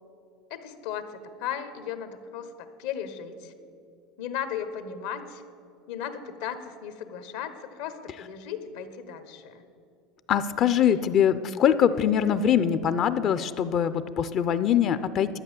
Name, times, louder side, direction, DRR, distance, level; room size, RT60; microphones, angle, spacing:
voice 1, 0.5-3.5 4.2-5.4 5.9-9.6 10.8-11.1, left 8 dB, 75° left, 10 dB, 1.1 m, -36 dB
voice 2, 10.3-15.4, left 9 dB, 45° left, 13 dB, 0.5 m, -23 dB
12.0 x 8.0 x 7.0 m, 2.5 s
supercardioid pair, 125°, 0 cm